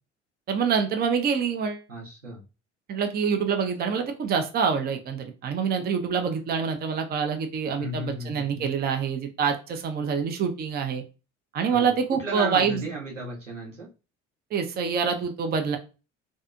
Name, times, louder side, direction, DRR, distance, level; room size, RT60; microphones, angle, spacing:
voice 1, 0.5-1.8 2.9-11.0 11.5-12.9 14.5-15.8, right 6 dB, 25° right, 6 dB, 0.5 m, -26 dB
voice 2, 1.9-2.4 7.8-8.7 11.7-13.9, right 1 dB, 90° right, -3 dB, 0.7 m, -35 dB
2.7 x 2.4 x 2.3 m, 0.31 s
figure-of-eight pair, 55°, 36 cm